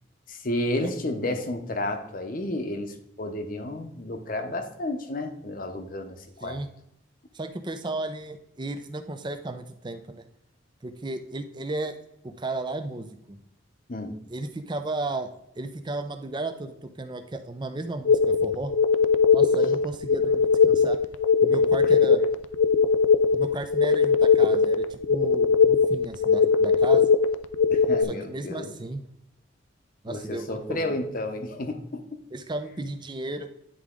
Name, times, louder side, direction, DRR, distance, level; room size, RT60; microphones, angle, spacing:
voice 1, 0.3-6.6 13.9-14.2 21.8-21.9 27.7-28.8 30.1-32.2, left 1 dB, 45° left, 6 dB, 0.8 m, -32 dB
voice 2, 7.3-10.2 10.8-11.9 12.2-13.4 14.3-15.3 15.6-18.7 19.3-21.0 21.4-22.3 23.3-27.1 28.1-29.0 30.0-30.9 32.3-33.5, right 2 dB, 25° right, 8 dB, 0.5 m, -34 dB
sound 1, 18.1-28.0, left 5 dB, 65° left, 0.3 m, -20 dB
9.9 x 3.5 x 3.7 m, 0.78 s
head